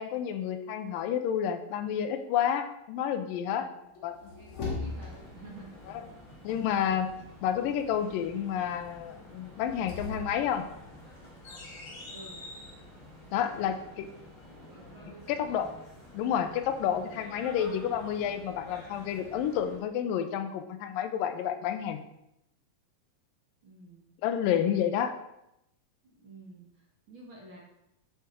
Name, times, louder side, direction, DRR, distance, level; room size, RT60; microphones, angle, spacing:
voice 1, 0.0-3.7 4.0-4.1 6.4-7.1 7.4-10.7 13.3-14.1 15.3-15.7 16.1-22.0 24.2-25.1, left 9 dB, 85° left, 8 dB, 2.4 m, -30 dB
voice 2, 3.5-3.9 4.3-5.8 12.1-12.5 13.3-14.3 14.7-15.6 23.6-24.1 26.0-27.6, right 2 dB, 45° right, -3 dB, 1.8 m, -50 dB
sound 1, 4.0-5.5 9.5-12.8, left 3 dB, 60° left, 3.0 m, -40 dB
sound 2, 4.8-19.8, left 1 dB, 25° left, 3.6 m, -50 dB
8.5 x 7.1 x 4.5 m, 0.83 s
omnidirectional pair, 4.0 m